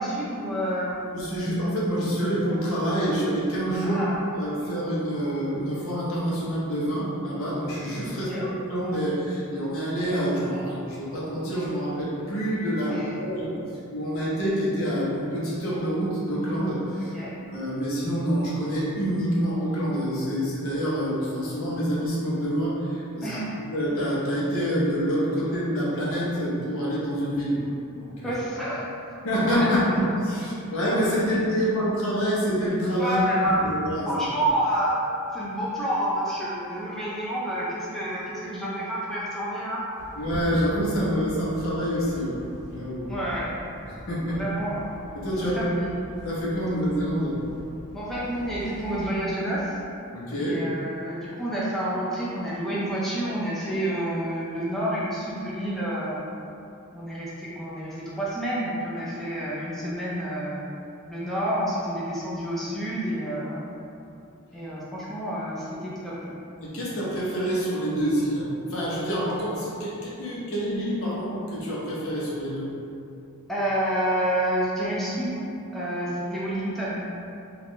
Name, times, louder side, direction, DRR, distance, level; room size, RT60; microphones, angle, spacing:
voice 1, 0.0-1.0 3.8-4.2 8.1-8.5 12.9-13.0 17.1-17.4 23.2-23.5 28.2-29.1 33.0-33.6 34.1-35.0 35.3-39.8 43.1-43.5 44.3-45.0 45.5-46.0 47.9-49.8 50.4-56.2 56.9-60.7 61.1-63.6 64.5-66.4 73.5-75.4 75.7-77.0, right 1 dB, ahead, -8 dB, 0.5 m, -29 dB
voice 2, 1.1-4.0 4.4-13.6 13.9-17.1 17.5-23.3 23.5-28.3 29.2-33.2 33.5-34.1 40.1-42.4 42.7-43.1 43.8-44.4 45.1-45.6 46.1-47.3 50.1-50.6 66.6-72.7, equal, 65° left, -6 dB, 0.9 m, -27 dB
sound 1, 40.0-49.1, equal, 55° right, 0.8 m, -42 dB
3.5 x 2.4 x 3.2 m, 2.7 s
head